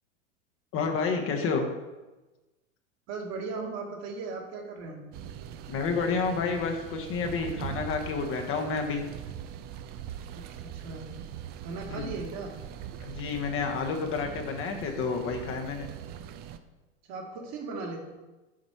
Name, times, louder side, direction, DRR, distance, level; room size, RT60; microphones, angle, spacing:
voice 1, 0.7-1.7 5.7-9.0 11.9-12.1 13.0-15.9, left 5 dB, 35° left, 3 dB, 0.9 m, -30 dB
voice 2, 3.1-5.0 10.3-11.1 11.6-12.5 17.1-18.0, right 4 dB, 45° right, 1 dB, 1.6 m, -37 dB
sound 1, 5.1-16.6, right 9 dB, 30° right, 0.3 m, -41 dB
7.4 x 4.2 x 4.4 m, 1.1 s
hypercardioid pair, 105°, 37 cm